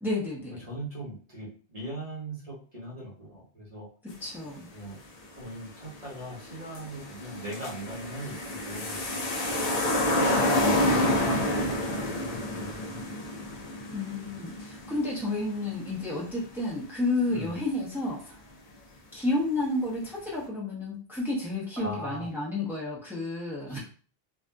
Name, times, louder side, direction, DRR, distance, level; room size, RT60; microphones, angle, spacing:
voice 1, 0.0-0.6 4.2-4.7 13.9-18.4 19.1-23.8, left 2 dB, ahead, -5 dB, 0.7 m, -31 dB
voice 2, 0.7-3.9 4.7-5.0 5.3-9.0 11.1-13.0 17.3-17.6 21.8-22.3 23.7-23.8, right 1 dB, 35° right, -5 dB, 1.1 m, -40 dB
sound 1, 5.9-6.0 6.3-16.1 16.4-16.5, left 1 dB, 45° left, 0.6 m, -28 dB
2.6 x 2.5 x 2.2 m, 0.40 s
omnidirectional pair, 1.1 m